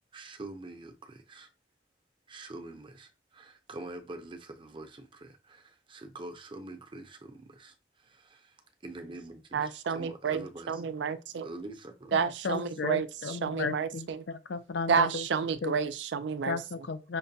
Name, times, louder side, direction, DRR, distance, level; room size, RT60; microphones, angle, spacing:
voice 1, 0.1-1.5 2.3-10.8 11.4-12.5, right 2 dB, 30° right, 0.6 m, -45 dB
voice 2, 9.5-11.5 12.1-14.2 14.9-16.6, right 6 dB, 75° right, 0.4 m, -30 dB
voice 3, 12.1-15.3 15.6-15.7 16.5-17.2, left 4 dB, 70° left, 0.5 m, -34 dB
5.8 x 2.2 x 2.7 m
head